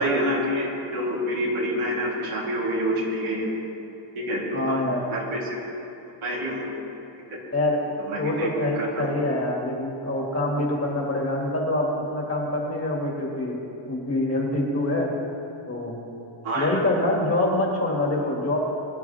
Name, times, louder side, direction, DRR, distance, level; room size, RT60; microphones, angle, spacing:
voice 1, 0.0-3.5 4.1-4.8 5.1-5.4 6.2-6.7 7.3-7.4 8.1-8.5 8.8-9.1 16.4-16.8, equal, 80° right, -5 dB, 3.4 m, -27 dB
voice 2, 4.5-5.0 7.5-7.8 8.1-13.6 13.9-15.1 15.7-16.0 16.5-18.6, left 1 dB, 30° left, -2 dB, 2.3 m, -25 dB
22.0 x 10.5 x 3.5 m, 2.7 s
wide cardioid pair, 165°, 49 cm